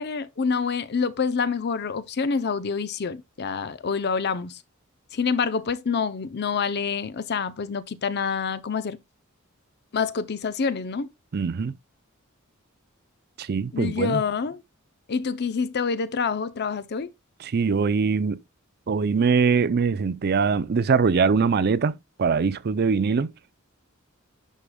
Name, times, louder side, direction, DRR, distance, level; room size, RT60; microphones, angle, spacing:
voice 1, 0.0-4.6 5.1-9.0 9.9-11.1 13.7-14.6 15.1-17.1, left 5 dB, 50° left, 0.6 m, -27 dB
voice 2, 11.3-11.8 13.4-14.2 17.4-18.4 18.9-23.3, right 5 dB, 50° right, 0.4 m, -22 dB
11.0 x 5.0 x 2.2 m
head